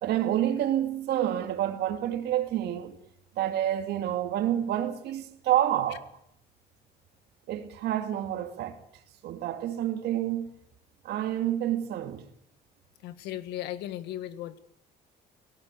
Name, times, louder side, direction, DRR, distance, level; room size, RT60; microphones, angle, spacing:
voice 1, 0.0-3.0 3.4-6.1 7.5-8.8 9.2-10.5 11.0-12.3, right 11 dB, 75° right, 2.5 m, -28 dB
voice 2, 13.0-14.6, left 12 dB, 85° left, 1.5 m, -36 dB
18.5 x 17.0 x 8.3 m
cardioid pair, 110°, 17 cm